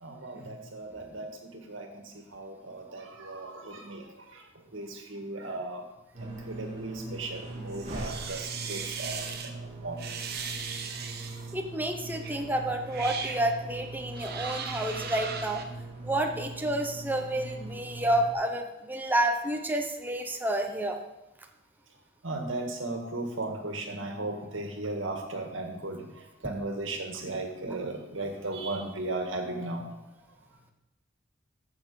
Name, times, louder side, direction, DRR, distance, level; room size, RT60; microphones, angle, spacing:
voice 1, 0.0-4.5 4.7-5.8 6.2-9.3 9.6-10.1 11.3-11.4 22.2-26.1 26.4-29.9, right 2 dB, 90° right, 4 dB, 1.8 m, -36 dB
sound 1, 6.1-18.3, right 2 dB, 35° right, 2.6 m, -41 dB
sound 2, 7.7-9.5 10.0-11.5 12.2-12.4 12.8-13.4 14.1-15.6, right 6 dB, 55° right, 1.1 m, -38 dB
voice 2, 11.5-15.6 16.0-21.0, right 1 dB, 10° right, 3 dB, 0.9 m, -29 dB
14.5 x 6.2 x 4.9 m, 0.98 s
head